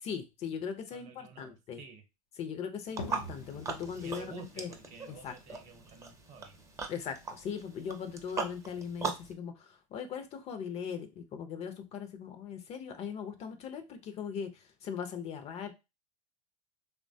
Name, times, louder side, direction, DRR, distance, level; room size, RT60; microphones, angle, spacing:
voice 1, 0.0-1.8 2.4-4.7 5.2-5.3 6.9-15.7, left 7 dB, 35° left, 0.5 m, -39 dB
voice 2, 0.9-2.0 3.9-6.6, right 6 dB, 45° right, 0.8 m, -51 dB
sound 1, 2.9-9.3, right 4 dB, 15° right, 0.5 m, -40 dB
sound 2, 3.0-8.4, left 1 dB, 90° left, 0.6 m, -49 dB
3.0 x 2.1 x 2.6 m
hypercardioid pair, 110°, 18 cm